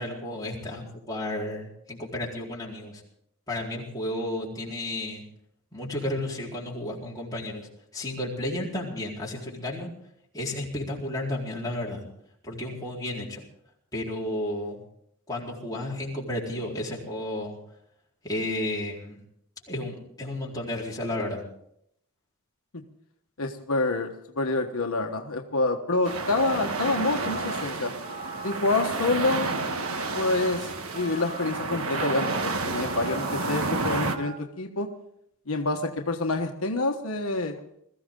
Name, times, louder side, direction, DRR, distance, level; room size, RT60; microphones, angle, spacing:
voice 1, 0.0-3.0 3.5-5.2 5.7-9.9 10.3-12.0 12.4-13.4 13.9-14.8 15.3-17.6 18.2-19.2 19.7-21.4, left 1 dB, 15° left, -4 dB, 4.2 m, -32 dB
voice 2, 23.4-27.9 28.4-29.5 30.1-34.9 35.5-37.6, left 2 dB, 75° left, 3 dB, 1.3 m, -27 dB
sound 1, 26.1-34.2, right 3 dB, 75° right, 1.3 m, -30 dB
sound 2, 27.1-27.6 28.0-28.6 29.0-29.5 30.0-30.5 30.9-31.5 31.9-32.4 32.9-33.4 33.8-34.4, right 2 dB, 50° right, 4.6 m, -41 dB
21.5 x 14.5 x 3.8 m, 0.73 s
head